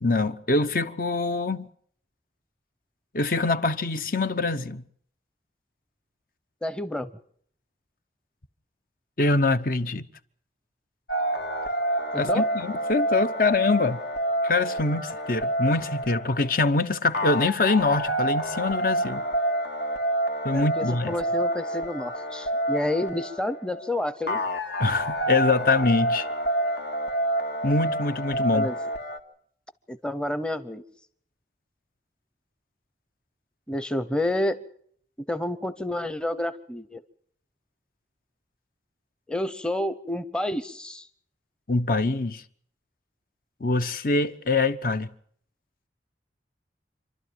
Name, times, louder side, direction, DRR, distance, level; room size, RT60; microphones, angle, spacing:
voice 1, 0.0-1.7 3.1-4.8 9.2-10.1 12.1-14.0 14.4-19.2 20.4-21.1 24.8-26.3 27.6-28.7 41.7-42.4 43.6-45.1, left 3 dB, 50° left, 0.9 m, -24 dB
voice 2, 6.6-7.1 12.3-12.5 20.5-24.4 28.5-28.8 29.9-30.8 33.7-34.6 35.3-37.0 39.3-41.1, left 1 dB, 5° left, 0.8 m, -29 dB
sound 1, 11.1-29.2, right 1 dB, 70° left, 2.1 m, -28 dB
27.0 x 12.5 x 9.2 m
head